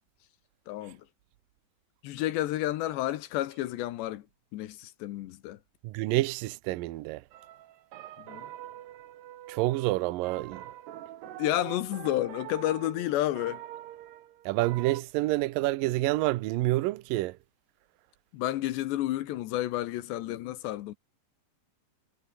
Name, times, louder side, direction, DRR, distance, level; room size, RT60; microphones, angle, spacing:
voice 1, 0.7-1.0 2.0-4.2 4.5-5.6 8.3-8.5 11.4-13.6 18.3-20.9, left 14 dB, 80° left, 3.3 m, -31 dB
voice 2, 5.8-7.2 9.5-10.6 14.5-17.4, right 18 dB, 90° right, 2.0 m, -28 dB
sound 1, 7.3-15.0, right 13 dB, 70° right, 3.4 m, -44 dB
omnidirectional pair, 5.0 m